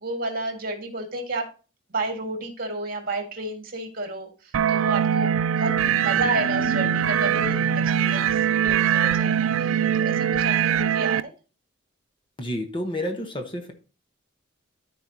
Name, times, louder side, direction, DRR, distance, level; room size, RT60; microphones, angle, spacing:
voice 1, 0.0-1.5 1.9-5.7 6.0-7.6 8.0-11.3, right 2 dB, 45° right, 3 dB, 1.9 m, -31 dB
sound 1, 4.5-11.2, right 8 dB, 85° right, 0.4 m, -22 dB
sound 2, 5.6-10.9, left 2 dB, 65° left, 0.8 m, -41 dB
voice 2, 12.4-13.7, left 1 dB, 25° left, 3 dB, 1.1 m, -30 dB
13.5 x 4.6 x 2.8 m, 0.34 s
head